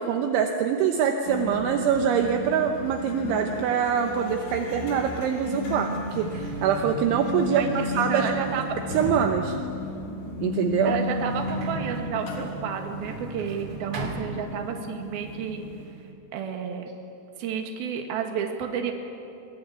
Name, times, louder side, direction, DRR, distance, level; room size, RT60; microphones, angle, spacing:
voice 1, 0.0-8.3 8.9-9.6 10.4-10.9, right 7 dB, 75° right, 4 dB, 3.3 m, -24 dB
sound 1, 1.3-15.9, left 2 dB, 80° left, 5.7 m, -34 dB
Sliding door, 5.1-5.2 5.9-15.0 15.3-16.1, right 2 dB, 40° right, 2.8 m, -40 dB
voice 2, 7.6-8.6 10.9-15.7 16.3-16.9 17.4-18.9, right 7 dB, 55° right, 3 dB, 3.4 m, -31 dB
23.0 x 21.5 x 9.8 m, 2.7 s
omnidirectional pair, 5.9 m